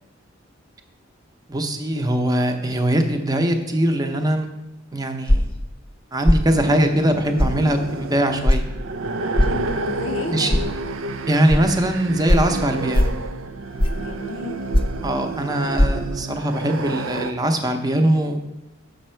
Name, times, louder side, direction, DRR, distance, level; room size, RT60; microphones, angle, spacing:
voice 1, 1.5-4.5 4.9-5.5 6.1-8.6 10.3-10.6 11.3-13.1 15.0-18.4, right 1 dB, 20° right, 5 dB, 0.7 m, -21 dB
sound 1, 5.3-5.6 6.3-6.5 7.4-7.6 8.5-8.6 9.4-9.6 10.5-10.6 11.5-11.6 12.3-12.5 12.9-13.2 13.8-14.1 14.7-15.0 15.8-15.9, left 1 dB, 30° left, 0.6 m, -17 dB
sound 2, 6.5-17.3, right 3 dB, 85° right, 0.5 m, -30 dB
voice 2, 9.4-10.7 14.0-14.7, left 3 dB, 85° left, 4 dB, 0.6 m, -34 dB
7.1 x 6.4 x 4.5 m, 0.93 s
head